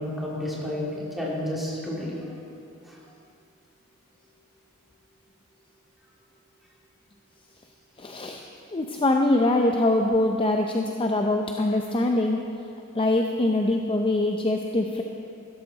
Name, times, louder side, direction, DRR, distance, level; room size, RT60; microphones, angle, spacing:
voice 1, 0.0-2.3 2.8-3.0, left 1 dB, ahead, -6 dB, 2.8 m, -31 dB
voice 2, 8.0-8.4 8.7-12.4 12.9-15.0, left 2 dB, 25° left, 2 dB, 0.6 m, -23 dB
16.0 x 13.0 x 4.0 m, 2.7 s
head